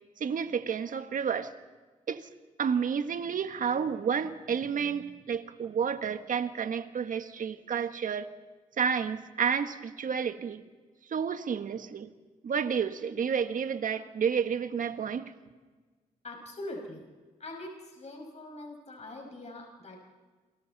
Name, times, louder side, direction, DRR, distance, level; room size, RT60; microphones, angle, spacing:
voice 1, 0.2-1.5 2.1-2.3 2.6-8.3 8.8-10.6 11.1-12.1 12.4-15.3, right 7 dB, 60° right, 1.6 m, -30 dB
voice 2, 16.2-17.1 17.4-20.0, left 1 dB, 45° left, 6.0 m, -42 dB
28.5 x 24.0 x 4.2 m
supercardioid pair, 55°, 15 cm